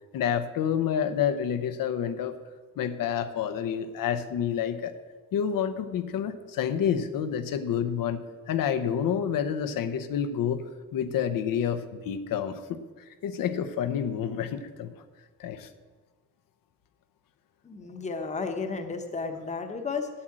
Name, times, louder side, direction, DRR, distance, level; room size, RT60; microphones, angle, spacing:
voice 1, 0.1-2.4 2.8-4.9 5.3-8.2 8.5-10.6 10.9-12.8 13.2-14.9 15.4-15.7, left 8 dB, 85° left, 10 dB, 0.9 m, -28 dB
voice 2, 17.6-20.1, left 4 dB, 20° left, 6 dB, 0.9 m, -33 dB
8.7 x 8.5 x 7.6 m, 1.3 s
wide cardioid pair, 170°, 33 cm